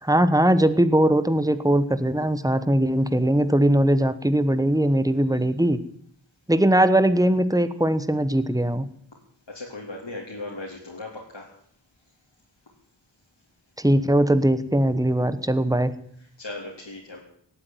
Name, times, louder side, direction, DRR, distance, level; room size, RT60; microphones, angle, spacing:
voice 1, 0.0-5.8 6.5-8.8 13.8-15.9, right 1 dB, 10° right, 12 dB, 1.3 m, -20 dB
voice 2, 9.5-11.5 16.4-17.2, left 2 dB, 70° left, -3 dB, 3.5 m, -37 dB
17.5 x 8.6 x 9.4 m, 0.65 s
wide cardioid pair, 40°, 46 cm